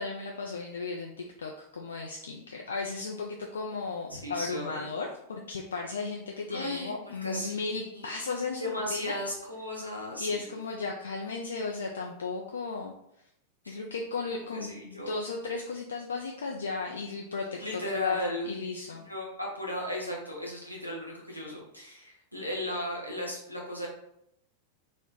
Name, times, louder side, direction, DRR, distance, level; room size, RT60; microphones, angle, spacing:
voice 1, 0.0-9.2 10.2-12.9 13.7-18.2 18.4-19.0, left 4 dB, 70° left, 1 dB, 0.3 m, -35 dB
voice 2, 4.1-4.9 6.5-8.1 8.6-10.3 13.6-13.8 14.5-15.1 17.6-18.6 18.9-23.9, left 1 dB, 90° left, -3 dB, 0.8 m, -35 dB
3.0 x 2.0 x 3.7 m, 0.76 s
figure-of-eight pair, 90°, 0 cm